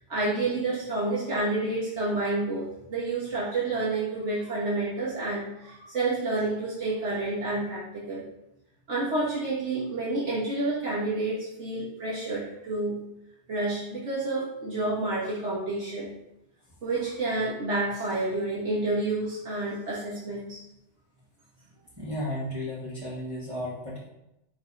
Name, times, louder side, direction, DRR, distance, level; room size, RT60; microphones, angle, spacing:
voice 1, 0.1-8.2 8.9-13.0 13.5-16.1 16.8-20.6, right 2 dB, 75° right, -9 dB, 2.2 m, -29 dB
voice 2, 22.0-24.1, left 1 dB, 20° right, -11 dB, 1.9 m, -34 dB
5.0 x 4.4 x 5.4 m, 0.86 s
omnidirectional pair, 1.2 m